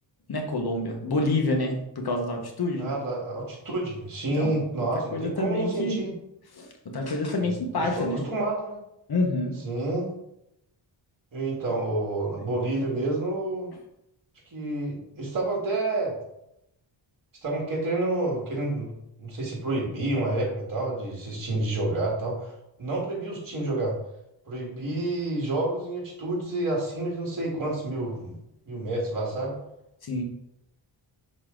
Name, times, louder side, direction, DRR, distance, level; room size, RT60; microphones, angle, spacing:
voice 1, 0.3-2.9 4.4-4.5 4.8-4.9 5.1-6.0 6.5-8.2 9.1-9.5 30.0-30.2, left 2 dB, 50° left, 2 dB, 1.3 m, -27 dB
voice 2, 2.8-6.1 7.4-7.5 7.8-8.8 9.6-10.1 11.3-13.7 14.5-16.1 17.4-18.9 19.2-24.0 24.5-28.4 28.7-29.5, right 2 dB, 45° right, -2 dB, 1.9 m, -29 dB
6.0 x 4.3 x 3.8 m, 0.82 s
wide cardioid pair, 120°, 47 cm